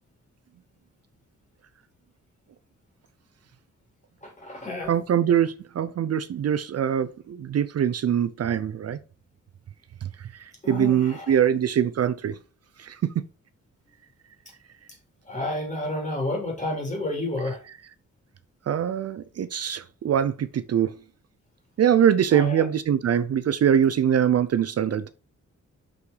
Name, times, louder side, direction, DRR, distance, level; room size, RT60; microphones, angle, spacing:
voice 1, 4.2-5.0 10.6-11.4 15.3-17.6 22.3-22.7, left 1 dB, 25° left, 3.0 m, -30 dB
voice 2, 4.9-9.0 10.2-12.4 12.8-13.2 18.7-20.9 21.8-25.1, right 9 dB, 55° right, 0.5 m, -23 dB
6.4 x 5.8 x 3.8 m
wide cardioid pair, 150°, 30 cm